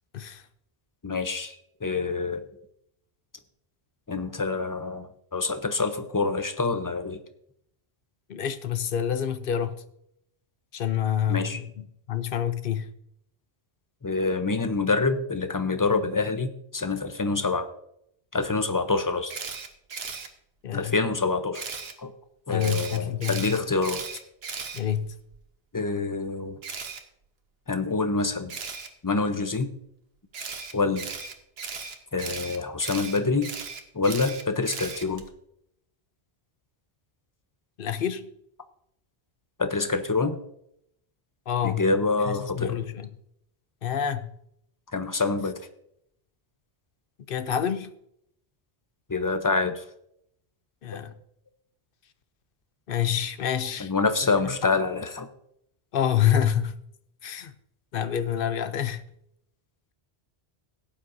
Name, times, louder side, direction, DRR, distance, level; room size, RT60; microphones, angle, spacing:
voice 1, 1.0-1.6 1.8-2.4 4.1-7.2 11.3-11.6 14.0-17.7 18.3-19.3 20.7-22.1 22.5-24.0 25.7-26.6 27.7-28.5 29.0-29.7 30.7-31.1 32.1-33.5 33.9-35.2 39.6-40.4 41.6-42.8 44.9-45.7 49.1-49.8 53.8-55.3, left 3 dB, 20° left, 0.6 m, -26 dB
voice 2, 8.3-9.8 10.7-12.9 20.6-20.9 22.5-23.5 24.7-25.1 37.8-38.3 41.5-41.9 42.3-43.1 43.8-44.3 47.3-47.9 50.8-51.2 52.9-53.9 54.5-54.6 55.9-56.8 57.2-57.5 57.9-59.0, left 9 dB, 60° left, 0.8 m, -27 dB
Camera, 19.3-20.3 21.5-21.9 22.6-25.4 26.6-27.0 28.5-28.9 30.3-35.3, right 5 dB, 70° right, 1.2 m, -36 dB
17.5 x 8.8 x 2.6 m
omnidirectional pair, 1.1 m